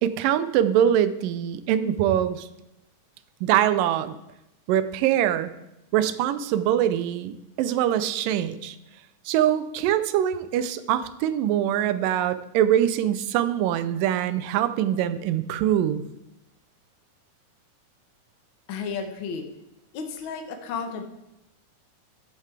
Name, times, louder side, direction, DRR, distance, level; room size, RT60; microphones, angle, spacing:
voice 1, 0.0-2.5 3.4-4.2 4.7-5.5 5.9-8.8 9.3-16.0, right 10 dB, 90° right, 12 dB, 2.3 m, -23 dB
voice 2, 18.7-19.4 19.9-21.0, left 5 dB, 85° left, 5 dB, 1.1 m, -32 dB
12.5 x 8.1 x 3.3 m, 0.90 s
omnidirectional pair, 3.8 m